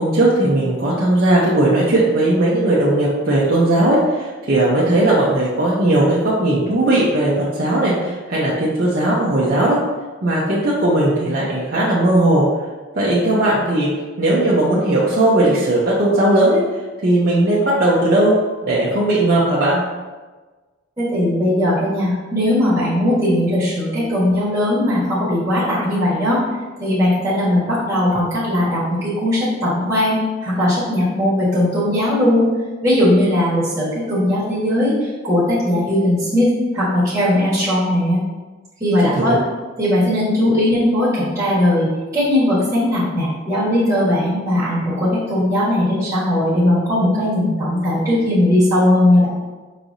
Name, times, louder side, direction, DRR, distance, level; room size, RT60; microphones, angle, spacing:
voice 1, 0.0-9.8 10.2-12.4 13.0-13.9 14.2-16.6 17.0-18.3 18.6-19.8 39.1-39.4, right 1 dB, 45° right, -7 dB, 0.6 m, -17 dB
voice 2, 21.0-26.4 26.8-32.5 32.8-34.9 35.2-38.2 38.8-39.4 39.8-49.3, left 1 dB, 15° right, -11 dB, 1.4 m, -18 dB
4.7 x 3.1 x 2.6 m, 1.3 s
head